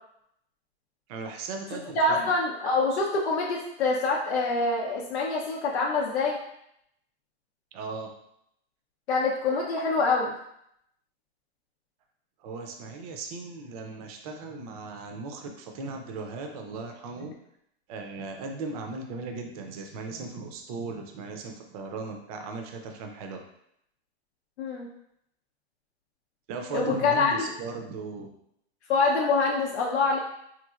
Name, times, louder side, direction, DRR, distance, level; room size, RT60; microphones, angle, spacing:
voice 1, 1.1-2.3 7.7-8.1 12.4-17.3 17.9-23.4 26.5-28.3, right 3 dB, 35° right, 4 dB, 0.5 m, -37 dB
voice 2, 1.9-6.4 9.1-10.3 24.6-24.9 26.7-27.5 28.9-30.2, left 3 dB, 80° left, -2 dB, 0.7 m, -25 dB
3.7 x 3.1 x 2.3 m, 0.75 s
hypercardioid pair, 150°, 33 cm